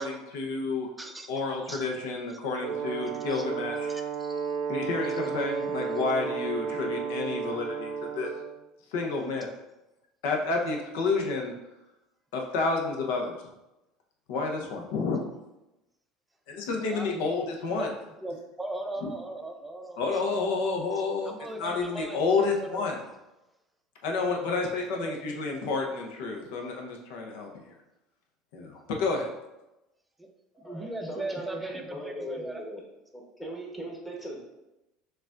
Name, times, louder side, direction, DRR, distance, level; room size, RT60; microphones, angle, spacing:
voice 1, 0.0-0.9 1.3-3.9 4.7-8.3 8.9-9.5 10.2-11.5 12.3-13.4 14.3-15.2 16.5-17.9 19.0-19.1 20.0-23.0 24.0-27.6 28.5-29.3, left 3 dB, 80° left, 1 dB, 0.8 m, -30 dB
voice 2, 1.0-1.3 1.7-1.9 2.3-2.4 3.3-3.4 3.8-4.6 16.8-17.3 17.7-17.9 18.2-20.4 21.3-22.9 24.5-25.1 30.2-30.3 30.6-32.6, right 2 dB, 10° right, 4 dB, 0.5 m, -39 dB
Brass instrument, 2.6-8.6, right 6 dB, 65° right, 0.6 m, -33 dB
voice 3, 30.5-32.8 33.1-34.4, equal, 10° left, -2 dB, 1.0 m, -39 dB
6.5 x 2.4 x 2.5 m, 0.96 s
supercardioid pair, 120°, 0 cm